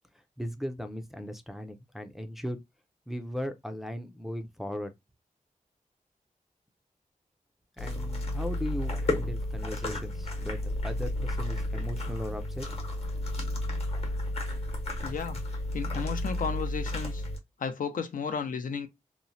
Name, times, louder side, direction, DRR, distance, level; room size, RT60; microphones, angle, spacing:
voice 1, 0.4-2.6 3.1-4.9 7.8-12.7, equal, ahead, 0.4 m, -37 dB
sound 1, 7.8-17.4, left 1 dB, 45° left, 0.9 m, -32 dB
voice 2, 15.0-15.4 15.7-17.2 17.6-18.9, left 6 dB, 75° left, 0.5 m, -33 dB
2.9 x 2.0 x 2.6 m
wide cardioid pair, 120°, 14 cm